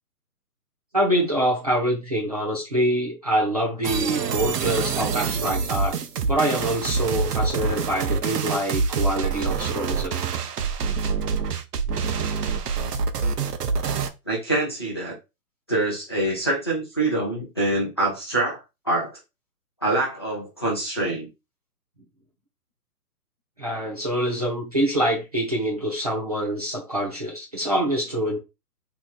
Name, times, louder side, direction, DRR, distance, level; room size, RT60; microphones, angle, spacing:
voice 1, 0.9-6.0 6.3-10.2 23.6-28.4, right 1 dB, 25° right, 0.6 m, -25 dB
sound 1, 3.8-14.1, right 5 dB, 80° right, 0.8 m, -26 dB
voice 2, 14.3-15.1 15.7-19.1 19.8-21.3, right 2 dB, 15° left, 0.6 m, -25 dB
2.9 x 2.4 x 3.7 m
hypercardioid pair, 170°, 47 cm